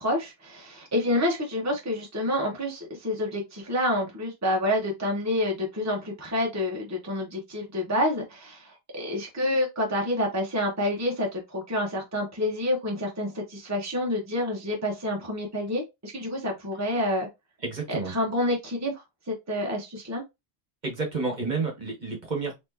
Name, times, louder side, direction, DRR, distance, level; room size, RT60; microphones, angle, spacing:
voice 1, 0.0-17.3 17.9-20.2, left 1 dB, 15° right, 1.0 m, -28 dB
voice 2, 17.6-18.1 20.8-22.5, right 3 dB, 45° right, 1.3 m, -30 dB
4.3 x 3.0 x 2.8 m
omnidirectional pair, 1.1 m